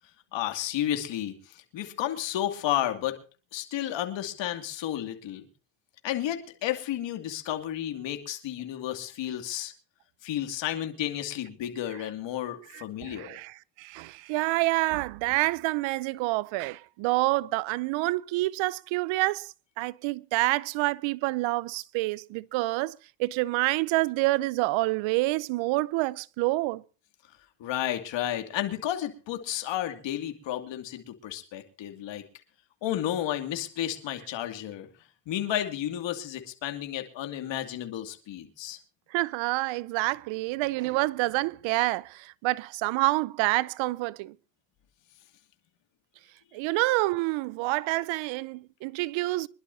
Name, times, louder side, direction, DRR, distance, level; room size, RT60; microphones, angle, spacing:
voice 1, 0.3-3.2 3.5-5.5 6.0-9.7 10.2-13.4 27.6-32.2 32.8-34.9 35.3-38.8, left 12 dB, 70° left, 2.6 m, -32 dB
voice 2, 12.7-26.8 39.1-44.3 46.5-49.5, right 20 dB, 85° right, 0.7 m, -28 dB
25.0 x 11.5 x 2.8 m
cardioid pair, 85°, 45 cm